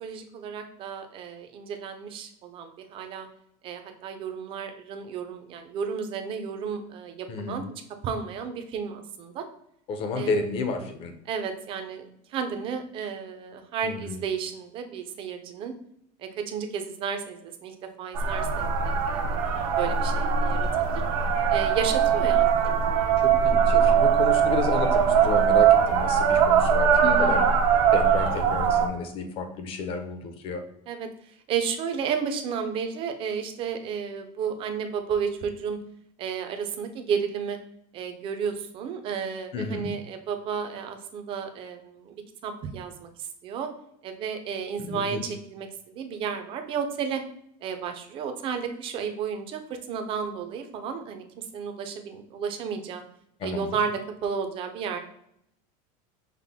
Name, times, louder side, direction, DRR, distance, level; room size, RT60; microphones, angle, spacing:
voice 1, 0.0-3.3 3.6-7.6 8.0-9.4 10.2-10.5 11.3-12.0 12.3-15.7 16.2-21.0 21.5-22.8 27.0-27.5 30.9-31.1 31.5-35.8 36.2-37.6 37.9-43.7 44.0-45.7 45.9-47.2 47.6-49.6 49.9-53.0 53.4-55.0, right 6 dB, 30° right, 7 dB, 0.5 m, -32 dB
voice 2, 7.3-7.6 9.9-11.1 13.8-14.2 23.2-27.4 27.9-30.6 39.5-39.9 44.8-45.2 53.4-53.7, left 3 dB, 30° left, 6 dB, 0.6 m, -31 dB
sound 1, 18.1-28.9, right 7 dB, 85° right, 0.7 m, -21 dB
5.7 x 2.1 x 3.4 m, 0.74 s
cardioid pair, 170°, 18 cm